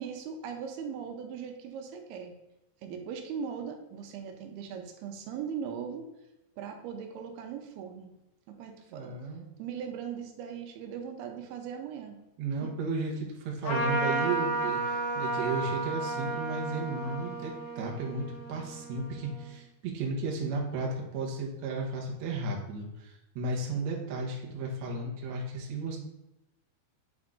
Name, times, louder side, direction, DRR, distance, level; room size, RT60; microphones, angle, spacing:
voice 1, 0.0-2.3 2.8-6.1 6.6-8.1 8.5-9.2 9.6-12.2 12.6-12.7, right 7 dB, 85° right, 4 dB, 2.7 m, -39 dB
voice 2, 8.9-9.5 12.4-26.0, right 3 dB, 65° right, -1 dB, 1.9 m, -34 dB
Trumpet, 13.6-19.5, right 2 dB, 65° left, 3.7 m, -33 dB
7.9 x 3.8 x 3.7 m, 0.93 s
omnidirectional pair, 4.5 m